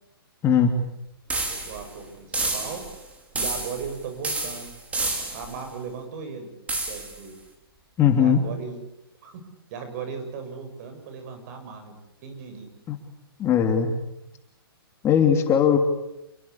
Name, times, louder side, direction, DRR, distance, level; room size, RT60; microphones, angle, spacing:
sound 1, 1.3-1.9 2.3-3.0 3.4-3.9 4.2-5.6 6.7-7.2, right 2 dB, 10° right, 4.7 m, -29 dB
voice 1, 1.5-2.8 3.3-4.7 5.3-6.5 6.9-7.3 8.2-8.8 9.2-9.4 9.7-12.8, right 5 dB, 45° right, 7 dB, 7.9 m, -37 dB
voice 2, 8.0-8.4 12.9-13.0 13.4-13.9 15.0-15.8, left 8 dB, 20° left, 4 dB, 3.1 m, -19 dB
28.5 x 22.0 x 8.6 m, 0.89 s
hypercardioid pair, 135°, 13 cm